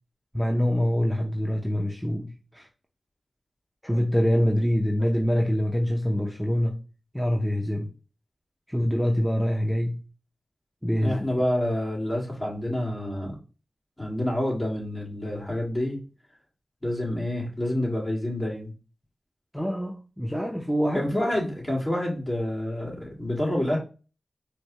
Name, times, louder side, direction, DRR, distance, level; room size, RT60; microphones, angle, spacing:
voice 1, 0.3-2.7 3.8-6.8 7.1-7.9 8.7-10.0 10.8-11.3 19.5-21.3, equal, 5° right, 0.6 m, -25 dB
voice 2, 11.0-13.4 14.0-16.0 16.8-18.7 20.9-23.8, left 1 dB, 30° left, 1.9 m, -28 dB
4.3 x 2.1 x 2.9 m
cardioid pair, 45°, 0 cm